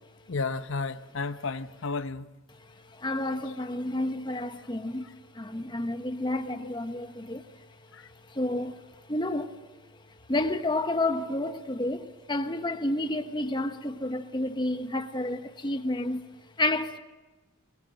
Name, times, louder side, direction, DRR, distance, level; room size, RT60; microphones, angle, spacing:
voice 1, 0.3-2.3 3.4-3.5 7.9-8.1, left 4 dB, 60° left, 0.8 m, -32 dB
voice 2, 2.6-7.6 8.3-8.8 9.1-9.6 10.3-16.2 16.6-17.0, left 1 dB, 20° left, 1.2 m, -30 dB
23.5 x 21.0 x 7.8 m
head